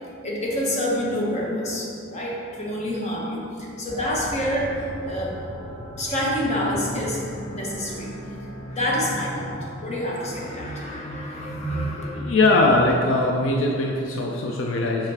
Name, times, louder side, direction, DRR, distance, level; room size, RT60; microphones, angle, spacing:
voice 1, 0.2-5.4 6.0-7.2 7.5-8.4 8.7-12.2, equal, 35° left, -4 dB, 1.1 m, -27 dB
sound 1, 3.9-12.3, equal, 15° left, 0.9 m, -37 dB
voice 2, 12.1-15.1, left 2 dB, 70° left, 0 dB, 0.5 m, -21 dB
5.7 x 4.4 x 4.6 m, 2.6 s
head